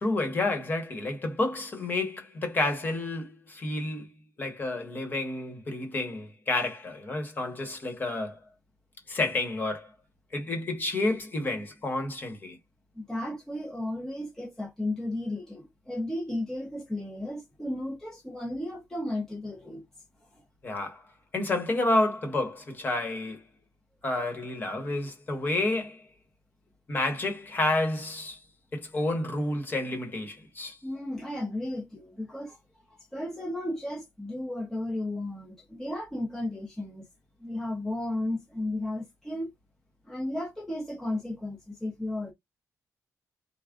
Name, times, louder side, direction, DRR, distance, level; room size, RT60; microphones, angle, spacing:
voice 1, 0.0-4.1 4.4-8.4 9.1-9.9 10.3-12.6 20.6-21.0 21.3-23.4 24.0-26.0 26.9-28.4 28.7-30.8, left 2 dB, 30° left, 1.1 m, -30 dB
voice 2, 13.0-19.8 30.8-32.6 33.1-37.1 37.4-39.5 40.1-42.3, left 1 dB, 5° left, 0.7 m, -34 dB
3.5 x 2.2 x 3.6 m
wide cardioid pair, 160°, 6 cm